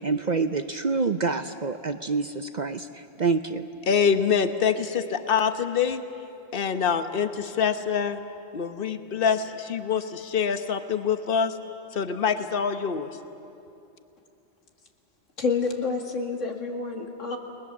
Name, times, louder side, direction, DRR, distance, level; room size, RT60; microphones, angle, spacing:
voice 1, 0.0-3.7, right 4 dB, 45° right, 9 dB, 0.6 m, -27 dB
voice 2, 3.9-6.0 6.5-8.2 8.5-11.5 11.9-13.1, left 7 dB, 50° left, 9 dB, 1.2 m, -25 dB
voice 3, 15.4-17.4, left 4 dB, 85° left, 2 dB, 2.5 m, -28 dB
30.0 x 20.5 x 7.2 m, 2.8 s
omnidirectional pair, 1.3 m